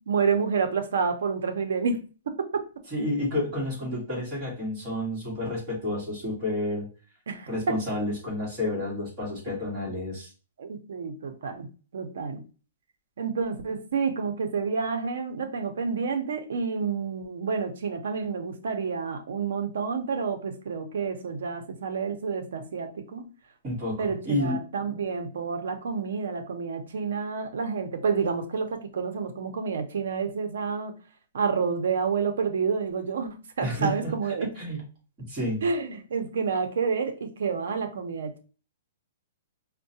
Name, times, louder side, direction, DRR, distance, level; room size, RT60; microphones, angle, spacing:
voice 1, 0.1-2.0 2.3-2.6 7.3-7.8 10.6-12.4 13.2-23.3 24.0-30.9 31.3-34.5 35.6-38.4, right 5 dB, 70° right, 6 dB, 0.7 m, -29 dB
voice 2, 2.9-6.9 7.5-10.3 23.6-24.6 33.6-34.8 35.3-35.6, left 1 dB, 20° right, -6 dB, 1.6 m, -30 dB
4.5 x 2.2 x 2.7 m, 0.35 s
hypercardioid pair, 175°, 0 cm